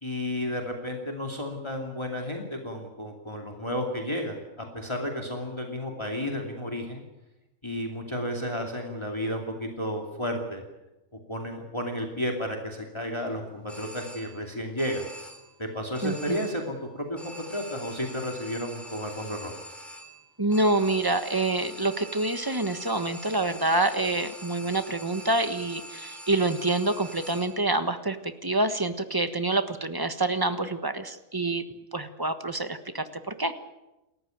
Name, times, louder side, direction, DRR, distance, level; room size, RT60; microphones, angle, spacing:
voice 1, 0.0-7.0 7.6-10.6 11.3-15.1 15.6-19.5, equal, 20° left, 1 dB, 2.7 m, -32 dB
sound 1, 13.7-14.5 14.8-15.6 15.9-16.8 17.2-27.7, equal, ahead, 4.1 m, -44 dB
voice 2, 16.0-16.4 20.4-31.6 31.9-33.6, right 2 dB, 15° right, 9 dB, 1.3 m, -27 dB
29.0 x 14.0 x 9.2 m, 1.0 s
omnidirectional pair, 1.3 m